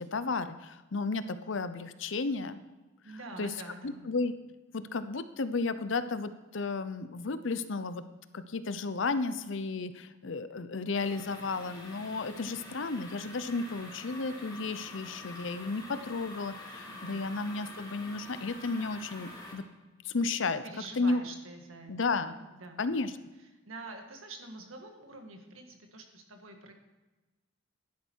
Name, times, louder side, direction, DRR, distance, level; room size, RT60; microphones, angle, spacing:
voice 1, 0.0-2.6 3.4-3.5 3.8-4.3 4.7-8.0 8.3-19.6 20.0-20.6 21.0-21.2 21.9-22.3 22.8-23.1, left 3 dB, 65° left, 12 dB, 0.6 m, -33 dB
voice 2, 3.0-4.1 16.9-17.3 20.6-21.9 22.3-22.8 23.7-26.7, right 2 dB, 90° right, 4 dB, 1.7 m, -46 dB
sound 1, 10.9-19.5, left 1 dB, 20° left, 2.5 m, -47 dB
11.5 x 10.5 x 4.6 m, 1.2 s
head